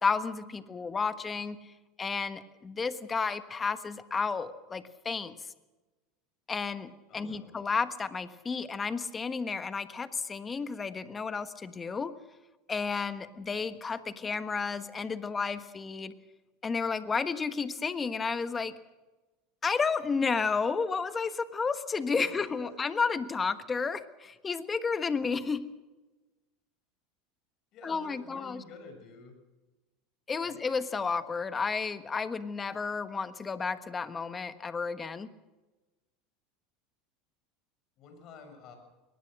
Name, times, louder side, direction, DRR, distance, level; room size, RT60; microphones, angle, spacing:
voice 1, 0.0-1.6 2.0-5.3 6.5-12.1 12.7-16.1 16.6-18.8 19.6-25.7 27.8-28.6 30.3-35.3, left 5 dB, 20° left, 11 dB, 1.4 m, -32 dB
voice 2, 7.1-7.5 22.2-22.7 27.7-29.4 30.4-30.6 38.0-38.8, left 4 dB, 50° left, 6 dB, 6.6 m, -50 dB
22.0 x 19.5 x 6.5 m, 1.1 s
supercardioid pair, 105°, 0 cm